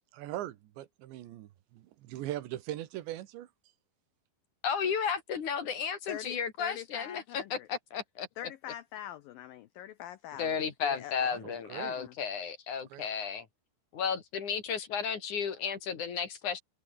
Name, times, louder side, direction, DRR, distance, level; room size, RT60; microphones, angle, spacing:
voice 1, 0.0-3.5 11.3-12.0 12.9-13.1, right 14 dB, 80° right, 3.6 m, -40 dB
voice 2, 4.6-8.3 10.4-13.5 13.9-16.6, left 6 dB, 50° left, 3.4 m, -33 dB
voice 3, 6.1-7.7 8.4-11.3 11.7-12.1, left 12 dB, 75° left, 2.1 m, -44 dB
omnidirectional pair, 5.2 m